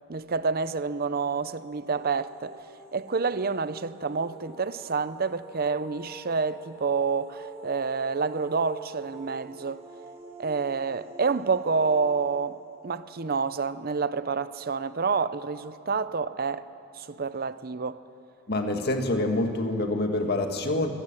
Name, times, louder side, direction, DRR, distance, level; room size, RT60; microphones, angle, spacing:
voice 1, 0.1-2.6 2.9-9.8 10.4-12.6 12.8-16.6 16.9-18.0, right 5 dB, 45° right, 0.7 m, -28 dB
sound 1, 1.3-14.1, right 2 dB, 25° right, 2.6 m, -47 dB
voice 2, 18.5-20.9, left 2 dB, 50° left, 1.9 m, -26 dB
25.0 x 16.0 x 9.1 m
head